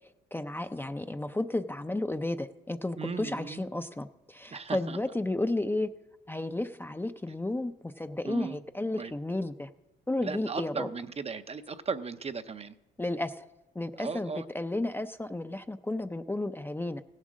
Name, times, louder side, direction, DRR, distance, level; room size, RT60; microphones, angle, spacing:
voice 1, 0.3-5.9 6.3-9.7 10.1-10.9 13.0-13.4 13.8-17.0, left 2 dB, 10° left, 9 dB, 0.5 m, -33 dB
voice 2, 3.0-3.6 4.5-5.0 8.3-8.6 9.0-9.1 10.2-12.7 14.0-14.5, right 5 dB, 30° right, 12 dB, 0.6 m, -36 dB
16.0 x 7.4 x 6.2 m, 0.99 s
cardioid pair, 90°, 20 cm